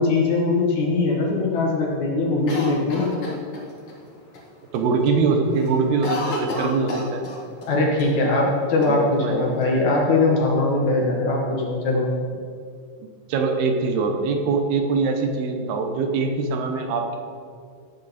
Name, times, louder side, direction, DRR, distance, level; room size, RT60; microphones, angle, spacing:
voice 1, 0.0-3.1 7.7-12.1, left 3 dB, 60° left, -1 dB, 2.3 m, -21 dB
Cough, 2.5-4.0 4.3-4.4 4.7-5.2 5.4-7.7 8.0-8.1 8.8-9.6, left 2 dB, 80° left, 1.0 m, -31 dB
voice 2, 4.7-7.2 8.8-9.6 13.3-17.2, right 4 dB, 75° right, 4 dB, 2.9 m, -23 dB
17.5 x 8.5 x 4.2 m, 2.2 s
omnidirectional pair, 4.8 m